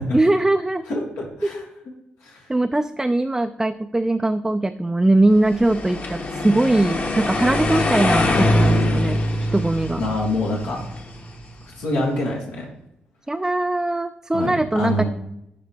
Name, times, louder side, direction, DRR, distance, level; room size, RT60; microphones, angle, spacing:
voice 1, 0.1-0.9 1.4-1.5 2.5-9.2 9.5-10.0 13.3-15.0, right 2 dB, 15° right, 9 dB, 0.3 m, -21 dB
voice 2, 0.9-1.6 2.2-2.5 10.0-10.8 11.8-12.7 14.3-15.0, left 1 dB, 80° left, -2 dB, 1.4 m, -25 dB
sound 1, 5.5-11.6, left 1 dB, 45° left, 1.3 m, -23 dB
10.0 x 3.4 x 2.9 m, 0.82 s
supercardioid pair, 50°, 4 cm